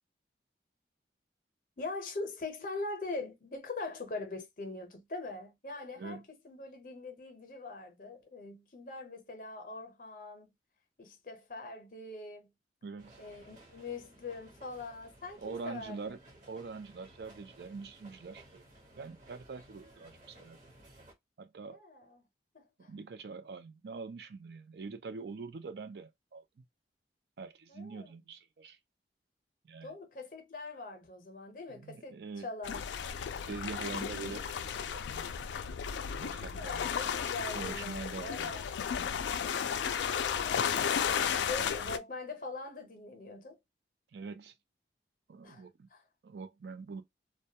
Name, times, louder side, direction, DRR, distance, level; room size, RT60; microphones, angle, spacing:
voice 1, 1.8-10.5 11.0-12.5 13.2-16.2 21.7-22.2 22.5-22.9 27.7-28.1 29.8-32.8 36.6-38.6 39.8-43.6 45.4-45.6 45.9-46.0, left 3 dB, 50° left, 0.6 m, -42 dB
voice 2, 12.8-13.2 15.4-16.2 16.5-18.6 19.0-20.6 21.4-21.8 22.9-26.6 27.4-28.8 29.6-29.9 31.7-32.5 33.5-35.3 36.2-36.9 37.5-38.5 44.1-44.5 45.3-45.9 46.2-47.0, right 4 dB, 65° right, 0.4 m, -44 dB
sound 1, 13.0-21.1, right 1 dB, 45° right, 0.8 m, -58 dB
sound 2, 32.6-42.0, left 7 dB, 85° left, 0.3 m, -34 dB
2.2 x 2.1 x 2.7 m
head